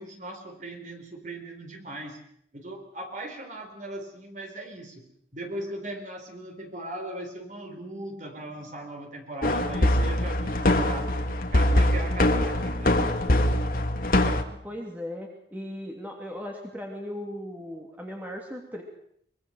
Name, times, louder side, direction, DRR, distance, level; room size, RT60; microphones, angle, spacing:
voice 1, 0.0-2.2 2.5-5.1 5.3-11.1 11.5-13.1, right 1 dB, 40° right, 4 dB, 4.0 m, -38 dB
sound 1, 9.4-14.4, left 1 dB, 50° left, 1.7 m, -23 dB
voice 2, 14.5-18.8, left 1 dB, 10° right, 0 dB, 2.8 m, -37 dB
23.5 x 22.0 x 6.5 m, 0.68 s
head